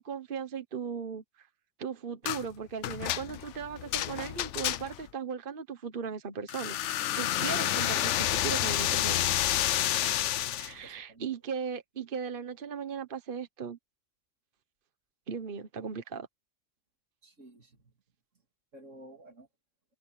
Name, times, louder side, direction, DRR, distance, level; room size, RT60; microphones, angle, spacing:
voice 1, 0.0-1.5 1.8-6.8 7.1-9.2 10.6-13.8 15.3-16.3, right 6 dB, 45° right, 1.3 m, -37 dB
sound 1, 2.3-2.5 2.8-5.1 6.5-10.7, left 13 dB, 75° left, 0.9 m, -29 dB
sound 2, 7.3-7.9 9.1-9.7, right 1 dB, 65° right, 3.4 m, -55 dB
voice 2, 10.8-11.3 17.2-17.9 18.7-19.5, right 1 dB, 85° right, 3.3 m, -52 dB
omnidirectional pair, 1.3 m